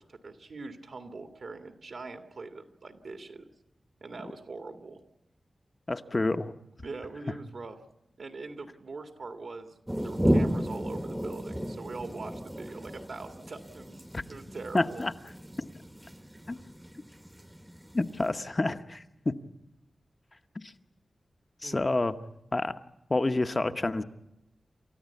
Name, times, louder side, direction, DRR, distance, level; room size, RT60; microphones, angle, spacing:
voice 1, 0.0-3.5 4.0-5.0 6.8-7.8 8.2-14.0 14.3-15.1 21.6-21.8, right 3 dB, 70° right, 6 dB, 2.0 m, -42 dB
voice 2, 5.9-6.5 14.1-14.2 14.7-15.1 16.5-16.6 17.9-19.3 20.5-20.7 21.6-22.2 22.5-22.8 23.1-24.0, left 2 dB, 30° left, 9 dB, 0.9 m, -28 dB
sound 1, 9.9-18.3, equal, 10° right, 1.0 m, -33 dB
29.0 x 14.0 x 8.3 m, 0.91 s
wide cardioid pair, 115°, 0 cm